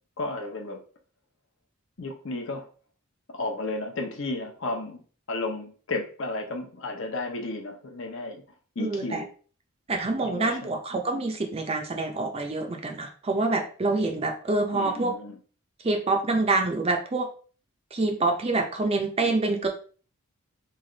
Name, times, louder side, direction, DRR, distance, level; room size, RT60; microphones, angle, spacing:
voice 1, 0.2-0.8 2.0-2.7 3.3-5.0 5.3-8.4 8.8-9.3 10.2-10.8 14.7-15.4, left 2 dB, 60° left, 2 dB, 0.7 m, -33 dB
voice 2, 8.8-9.2 9.9-15.1 15.8-17.3 17.9-19.7, right 3 dB, 25° right, 3 dB, 0.5 m, -26 dB
3.2 x 2.4 x 3.8 m, 0.40 s
head